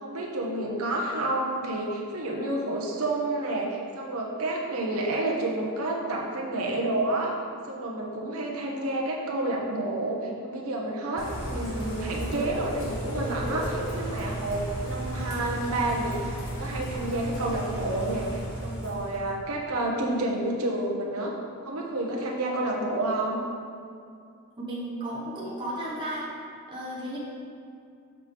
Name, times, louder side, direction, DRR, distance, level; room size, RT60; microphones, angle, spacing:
voice 1, 0.0-7.4 7.7-21.3 21.6-23.4, right 2 dB, 80° right, -2 dB, 1.1 m, -29 dB
Bird / Rain, 11.2-19.3, right 1 dB, 65° left, 1.4 m, -34 dB
voice 2, 24.6-26.3 26.7-27.2, right 1 dB, 20° right, -7 dB, 1.1 m, -34 dB
6.6 x 6.0 x 3.5 m, 2.4 s
head